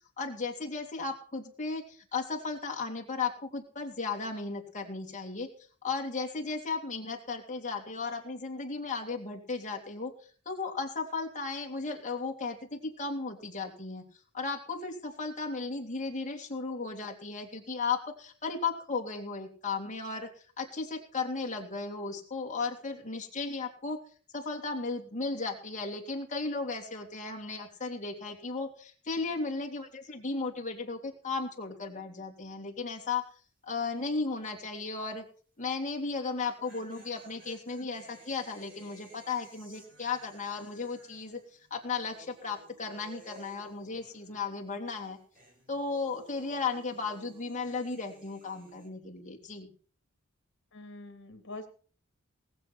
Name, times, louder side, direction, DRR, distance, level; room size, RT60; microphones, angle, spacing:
voice 1, 0.2-5.5 5.8-10.1 10.4-14.0 14.3-20.3 20.6-24.0 24.3-33.2 33.6-35.2 35.6-41.4 41.7-45.2 45.7-49.7, left 4 dB, 35° left, 1 dB, 3.1 m, -35 dB
sound 1, 32.9-33.2 33.5-33.6 36.2-44.6 44.9-48.9, right 2 dB, 40° right, 4.9 m, -56 dB
voice 2, 50.7-51.7, left 2 dB, 60° left, 7 dB, 2.8 m, -44 dB
19.0 x 8.0 x 6.0 m, 0.42 s
head